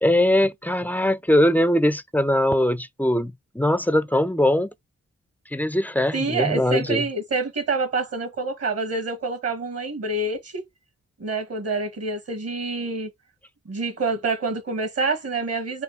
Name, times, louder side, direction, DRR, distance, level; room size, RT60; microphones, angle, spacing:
voice 1, 0.0-4.7 5.5-7.0, left 1 dB, 5° left, 0.4 m, -21 dB
voice 2, 6.1-10.6 11.2-13.1 13.6-15.8, right 3 dB, 50° right, 1.7 m, -27 dB
4.3 x 2.4 x 3.5 m
supercardioid pair, 50°, 31 cm